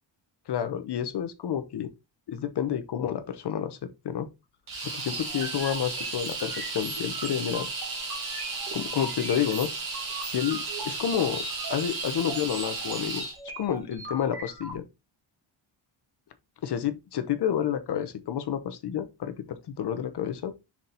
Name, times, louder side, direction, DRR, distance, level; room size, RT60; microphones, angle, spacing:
voice 1, 0.5-1.9 2.3-3.8 4.0-4.3 4.8-7.7 8.7-9.7 10.2-11.4 11.7-13.2 13.6-14.8 16.6-20.5, left 9 dB, 60° left, 0.9 m, -29 dB
sound 1, 4.7-13.4, right 3 dB, 80° right, 2.9 m, -34 dB
sound 2, 5.1-14.7, right 1 dB, 50° right, 2.0 m, -41 dB
5.9 x 4.0 x 4.2 m
cardioid pair, 135°, 46 cm